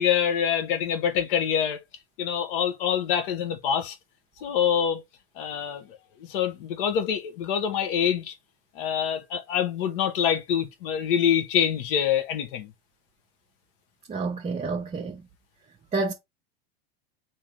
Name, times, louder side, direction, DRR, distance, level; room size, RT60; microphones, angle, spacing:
voice 1, 0.0-1.8 2.2-4.0 4.4-5.0 5.4-5.8 6.2-8.3 8.7-12.7, left 8 dB, 60° left, 1.2 m, -25 dB
voice 2, 14.1-15.2 15.9-16.1, right 3 dB, 20° right, 0.9 m, -29 dB
3.7 x 3.0 x 4.4 m
hypercardioid pair, 95°, 30 cm